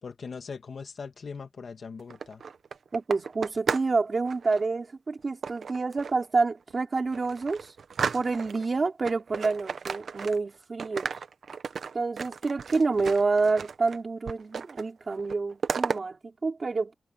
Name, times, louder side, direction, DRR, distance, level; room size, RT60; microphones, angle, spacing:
voice 1, 0.0-2.4, left 5 dB, 50° left, 2.0 m, -40 dB
sound 1, 2.0-4.0 4.2-4.6 5.4-6.2 6.7-6.8 7.1-8.7 9.0-10.5 10.8-14.0 14.3-14.9 15.1-16.0, right 6 dB, 65° right, 1.1 m, -34 dB
voice 2, 2.9-7.7 8.1-11.1 11.9-16.9, right 4 dB, 35° right, 3.8 m, -28 dB
wide cardioid pair, 165°, 0 cm